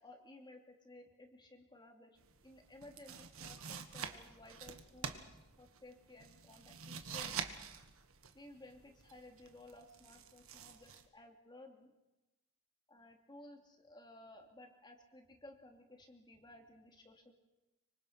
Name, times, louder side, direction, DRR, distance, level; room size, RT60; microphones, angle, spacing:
voice 1, 0.0-2.2 2.4-7.6 8.3-11.9 12.9-17.3, left 1 dB, 20° left, 2 dB, 2.6 m, -57 dB
Cutting Tomato, 2.2-11.1, right 6 dB, 70° right, 1.7 m, -47 dB
25.0 x 25.0 x 5.8 m, 1.0 s
head